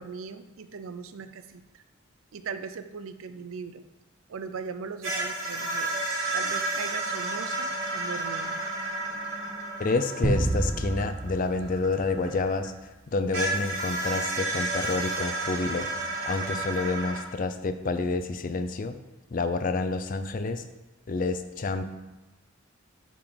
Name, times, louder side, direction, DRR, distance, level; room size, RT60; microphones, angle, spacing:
voice 1, 0.0-1.8 2.3-3.8 4.3-6.0 6.3-8.6, right 5 dB, 90° right, 10 dB, 0.5 m, -39 dB
sound 1, 5.0-12.7 13.3-17.2, right 2 dB, 70° right, 2.2 m, -32 dB
voice 2, 9.8-15.9 16.2-19.0 19.3-20.7 21.1-21.8, left 3 dB, 40° left, 9 dB, 0.4 m, -29 dB
sound 2, 10.2-12.8, right 1 dB, 35° right, 0.7 m, -29 dB
6.9 x 3.7 x 5.1 m, 1.0 s
head